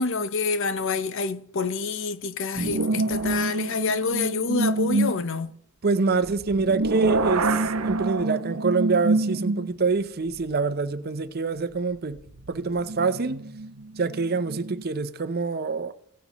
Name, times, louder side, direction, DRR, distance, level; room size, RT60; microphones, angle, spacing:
voice 1, 0.0-5.5, left 4 dB, 60° left, 0.7 m, -27 dB
sound 1, 2.5-5.2 6.2-9.9 10.4-10.5 12.3-14.8, right 2 dB, 85° right, 0.8 m, -26 dB
voice 2, 5.8-12.2 12.5-13.4 14.0-16.2, right 4 dB, 45° right, 0.6 m, -26 dB
16.5 x 9.5 x 3.0 m
head